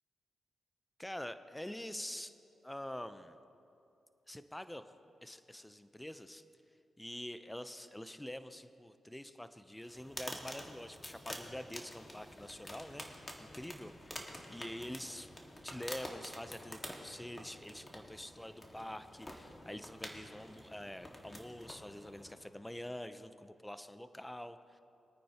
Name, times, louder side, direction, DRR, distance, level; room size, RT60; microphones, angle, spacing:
voice 1, 1.0-2.3 2.6-3.4 4.3-4.8 5.2-6.4 7.0-15.3 15.6-24.8, left 1 dB, 10° left, 11 dB, 0.7 m, -46 dB
sound 1, 9.8-22.5, left 1 dB, 25° left, 1.9 m, -49 dB
22.5 x 9.2 x 3.0 m, 2.7 s
supercardioid pair, 50°, 0 cm